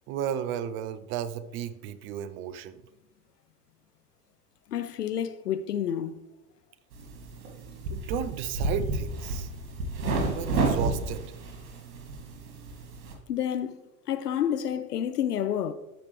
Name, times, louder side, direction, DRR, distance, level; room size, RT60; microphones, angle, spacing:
voice 1, 0.1-2.8 7.9-9.5 10.3-11.3, right 9 dB, 25° right, 0.4 m, -33 dB
voice 2, 4.7-6.2 13.3-13.8 14.1-15.7, left 9 dB, 80° left, 0.6 m, -29 dB
sound 1, 6.9-13.1, right 2 dB, 60° right, 1.9 m, -31 dB
13.0 x 5.0 x 3.1 m
figure-of-eight pair, 80°, 46 cm